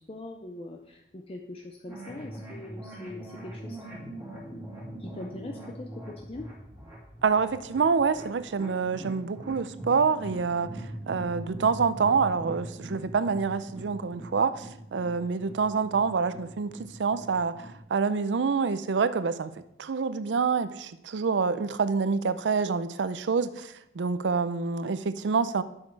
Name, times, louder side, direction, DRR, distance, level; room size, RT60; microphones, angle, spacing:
voice 1, 0.0-4.7 5.0-6.5, left 2 dB, 35° left, 2 dB, 0.6 m, -42 dB
sound 1, 1.9-17.8, right 1 dB, 10° right, 2.3 m, -42 dB
voice 2, 7.2-10.7 11.1-19.5 19.8-25.6, right 5 dB, 90° right, 13 dB, 0.5 m, -27 dB
7.3 x 6.4 x 4.6 m, 0.79 s
head